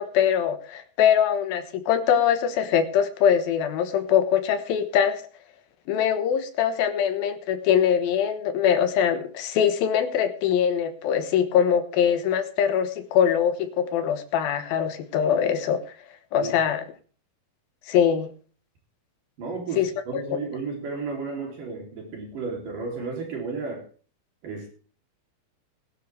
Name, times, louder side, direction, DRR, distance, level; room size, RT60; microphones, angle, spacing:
voice 1, 0.0-5.2 5.9-15.8 16.3-16.8 17.9-18.3 19.8-19.9, left 8 dB, 80° left, 9 dB, 3.0 m, -22 dB
voice 2, 19.4-23.8 24.4-24.7, right 4 dB, 60° right, 0 dB, 4.6 m, -33 dB
20.0 x 11.5 x 3.3 m, 0.39 s
omnidirectional pair, 4.3 m